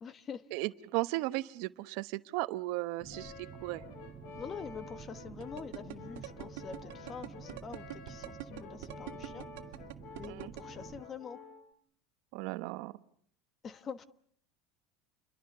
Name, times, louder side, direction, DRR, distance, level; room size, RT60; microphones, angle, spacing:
voice 1, 0.0-0.5 4.4-9.5 10.2-11.5 13.6-14.0, left 6 dB, 25° left, 1.2 m, -45 dB
voice 2, 0.5-3.3 3.6-3.8 10.3-10.5 12.3-12.9, right 19 dB, 60° right, 1.0 m, -35 dB
sound 1, 3.0-11.0, right 6 dB, 25° right, 1.7 m, -50 dB
Brass instrument, 3.1-11.7, left 5 dB, 60° left, 3.8 m, -50 dB
sound 2, 5.4-10.6, right 16 dB, 90° right, 2.0 m, -43 dB
29.5 x 23.0 x 6.8 m
cardioid pair, 160°, 0 cm